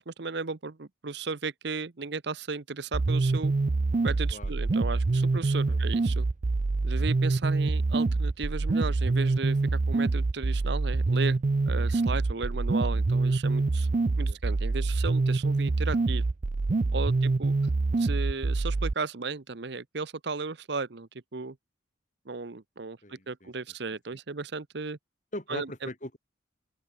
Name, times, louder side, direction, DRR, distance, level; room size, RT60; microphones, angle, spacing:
voice 1, 0.0-3.5 4.0-6.3 6.8-11.4 11.7-13.9 14.2-16.2 16.9-17.5 18.0-21.6 22.3-25.0 25.5-25.7, right 4 dB, 60° right, 0.8 m, -35 dB
sound 1, 2.9-18.9, right 3 dB, 40° right, 0.4 m, -26 dB
voice 2, 16.9-17.2 23.0-23.5 24.1-24.2 25.3-26.2, left 1 dB, 40° left, 4.8 m, -41 dB
open air
head